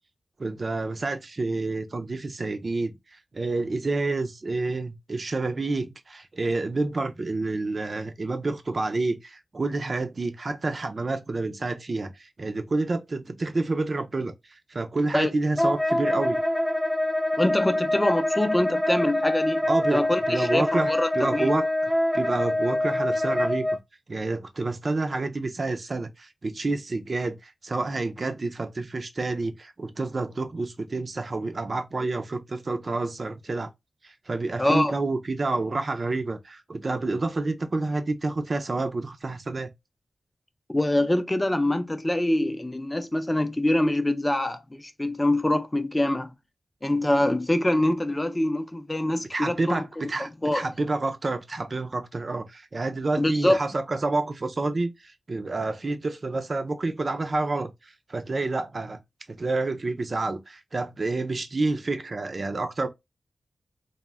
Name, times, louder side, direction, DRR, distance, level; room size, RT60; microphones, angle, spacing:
voice 1, 0.4-2.9 3.3-16.4 19.7-21.7 22.1-23.7 24.1-33.7 34.0-39.7 49.3-59.0 59.3-62.9, right 3 dB, 50° right, 0.4 m, -29 dB
Wind instrument woodwind instrument, 15.6-23.8, left 1 dB, 5° left, 0.8 m, -25 dB
voice 2, 17.4-19.6 19.9-21.5 34.6-34.9 40.7-46.3 46.8-50.7 53.2-53.6, left 1 dB, 20° left, 0.5 m, -25 dB
2.1 x 2.1 x 3.4 m
cardioid pair, 55°, 0 cm